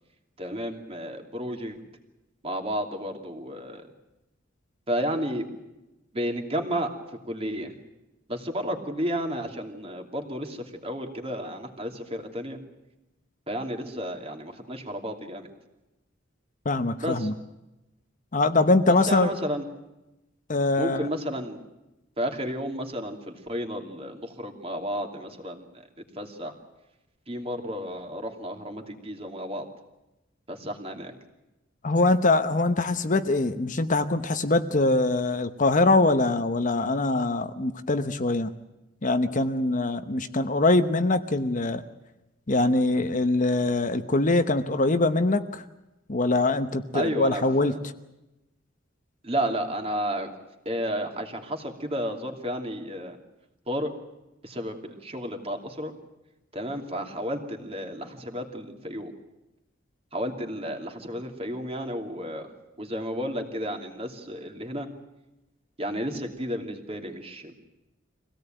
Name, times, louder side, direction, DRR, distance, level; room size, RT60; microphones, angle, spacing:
voice 1, 0.4-1.8 2.4-3.8 4.9-5.5 6.1-6.9 7.2-7.7 8.3-12.6 13.5-15.5 17.0-17.3 18.9-19.6 20.8-21.6 22.2-25.7 26.2-26.5 27.3-29.6 30.5-31.1 46.9-47.8 49.2-50.3 50.6-53.2 53.7-53.9 54.4-55.9 56.5-59.1 60.1-62.5 62.8-64.9 65.8-67.5, equal, 30° right, 4 dB, 2.8 m, -32 dB
voice 2, 16.6-17.3 18.3-19.3 20.5-21.1 31.8-38.5 39.0-41.8 42.5-45.6 46.1-47.7, left 2 dB, 40° left, 9 dB, 1.0 m, -23 dB
25.0 x 17.5 x 9.1 m, 0.97 s
head